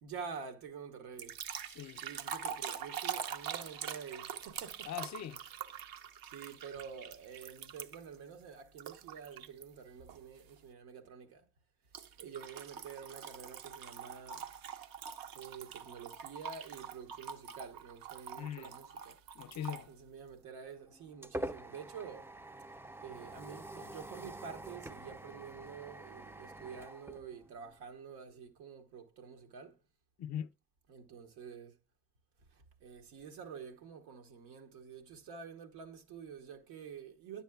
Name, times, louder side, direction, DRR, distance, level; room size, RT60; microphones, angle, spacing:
voice 1, 0.0-1.4 2.0-4.9 6.2-11.5 12.2-14.5 15.3-19.2 19.9-22.3 23.0-29.8 30.9-31.8 32.5-37.4, right 6 dB, 85° right, 1.1 m, -48 dB
sound 1, 1.2-8.2 8.8-9.6 10.1-10.4 11.9-19.9, right 8 dB, 65° right, 0.7 m, -44 dB
voice 2, 1.7-2.1 4.9-5.4 18.4-18.8 19.3-19.9 30.2-30.5, left 10 dB, 50° left, 0.5 m, -41 dB
sound 2, 20.5-27.9, right 1 dB, 5° right, 0.4 m, -46 dB
9.8 x 7.1 x 2.3 m
supercardioid pair, 60°, 37 cm